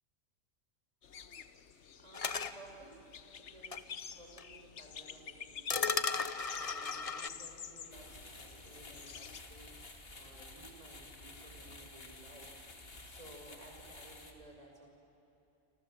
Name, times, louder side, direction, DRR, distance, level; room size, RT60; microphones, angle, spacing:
sound 1, 1.0-9.4, left 7 dB, 70° left, 1.2 m, -49 dB
voice 1, 2.0-3.1 3.4-3.8 4.2-12.6 13.1-14.9, right 1 dB, 30° right, 1 dB, 5.3 m, -56 dB
sound 2, 2.1-2.5 3.7-3.8 4.4-4.5 5.7-7.3, left 4 dB, 35° left, 0.8 m, -35 dB
sound 3, 7.9-14.3, left 2 dB, 50° left, 2.5 m, -52 dB
28.0 x 27.0 x 7.6 m, 2.9 s
omnidirectional pair, 1.3 m